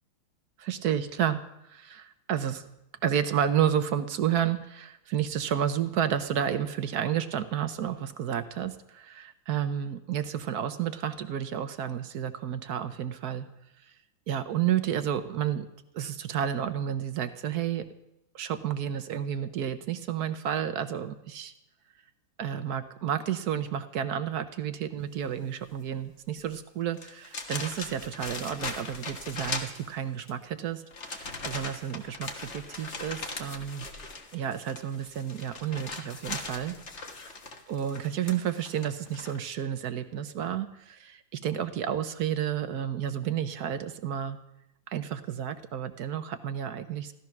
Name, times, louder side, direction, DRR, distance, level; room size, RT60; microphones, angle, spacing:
voice 1, 0.6-1.4 1.7-2.7 3.0-13.5 14.3-15.7 15.9-17.8 18.3-21.5 22.4-33.9 34.3-36.7 37.7-44.4 44.9-47.1, right 9 dB, 60° right, 11 dB, 1.1 m, -31 dB
sound 1, 26.4-26.6 26.9-30.3 30.9-39.4, left 3 dB, 35° left, 1.6 m, -39 dB
15.5 x 13.5 x 5.9 m, 0.86 s
omnidirectional pair, 2.3 m